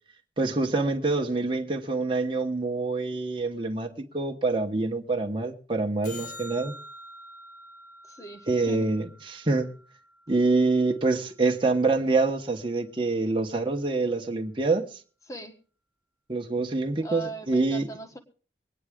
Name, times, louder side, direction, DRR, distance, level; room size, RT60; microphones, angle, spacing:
voice 1, 0.4-6.7 8.5-9.8 10.3-15.0 16.3-17.9, right 3 dB, 30° right, 1.1 m, -26 dB
sound 1, 6.0-10.5 17.1-17.2, left 1 dB, 50° left, 2.2 m, -46 dB
voice 2, 8.0-8.9 15.3-15.5 17.0-18.2, right 2 dB, 20° left, 1.4 m, -39 dB
23.5 x 9.6 x 3.6 m
head